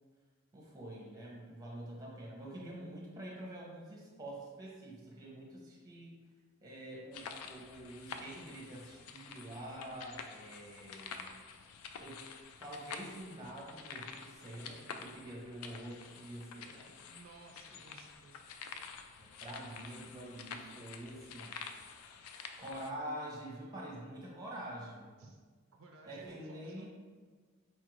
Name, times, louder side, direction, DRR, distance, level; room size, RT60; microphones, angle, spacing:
voice 1, 0.5-6.2 6.6-11.2 12.0-12.2 12.6-16.9 19.2-21.6 22.6-25.2 26.0-26.9, right 1 dB, 15° right, -3 dB, 0.7 m, -46 dB
sound 1, 7.1-22.9, left 6 dB, 85° left, 0.3 m, -49 dB
voice 2, 17.1-18.5 25.2-25.4 25.7-26.9, right 3 dB, 65° right, 1 dB, 0.4 m, -57 dB
4.3 x 2.5 x 3.0 m, 1.5 s
head